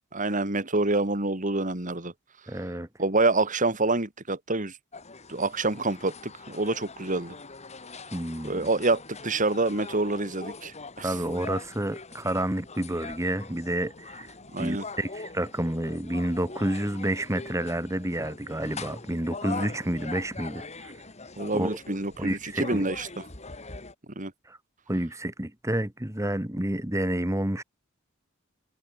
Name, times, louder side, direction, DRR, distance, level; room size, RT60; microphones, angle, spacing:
voice 1, 0.1-2.1 3.0-4.7 5.3-7.3 8.4-11.1 14.5-14.8 19.4-19.7 21.4-23.1 24.2-24.3, right 2 dB, 40° right, 3.0 m, -27 dB
voice 2, 2.5-2.9 8.1-8.7 11.0-20.9 21.5-21.8 22.2-22.9 24.5-24.6 24.9-27.6, right 1 dB, 15° right, 1.7 m, -29 dB
sound 1, 4.9-23.9, left 4 dB, 35° left, 3.3 m, -42 dB
head